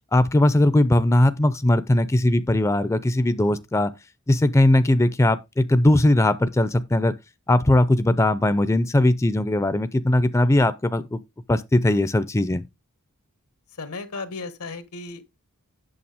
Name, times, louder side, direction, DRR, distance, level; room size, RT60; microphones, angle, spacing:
voice 1, 0.1-3.9 4.3-7.1 7.5-11.2 11.5-12.6, left 1 dB, 15° left, 0.4 m, -19 dB
voice 2, 13.7-15.2, left 3 dB, 85° left, 1.3 m, -35 dB
8.6 x 6.6 x 3.5 m
head